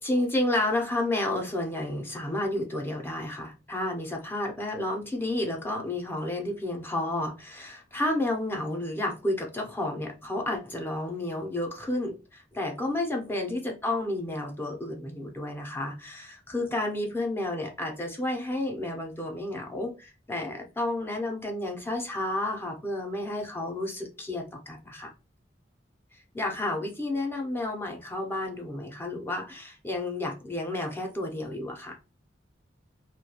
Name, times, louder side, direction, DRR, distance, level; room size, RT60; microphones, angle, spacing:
voice 1, 0.0-25.1 26.3-32.0, left 1 dB, 10° left, 0.5 m, -31 dB
2.3 x 2.2 x 2.8 m
head